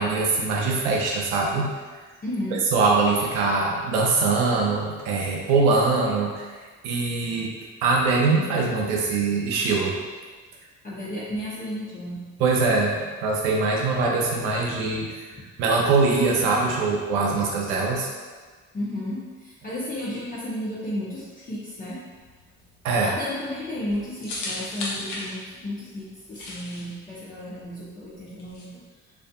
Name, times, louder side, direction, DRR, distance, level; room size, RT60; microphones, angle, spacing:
voice 1, 0.0-2.1 2.7-6.5 6.8-7.5 7.8-9.9 12.4-15.2 15.6-18.1 22.8-23.1, right 3 dB, 75° right, -1 dB, 0.6 m, -23 dB
voice 2, 2.2-2.6 10.8-12.2 18.7-22.0 23.0-28.8, left 1 dB, 20° left, -9 dB, 0.7 m, -33 dB
sound 1, 22.1-28.6, left 2 dB, 55° left, 0.7 m, -37 dB
2.5 x 2.4 x 2.3 m, 1.4 s
figure-of-eight pair, 45°, 39 cm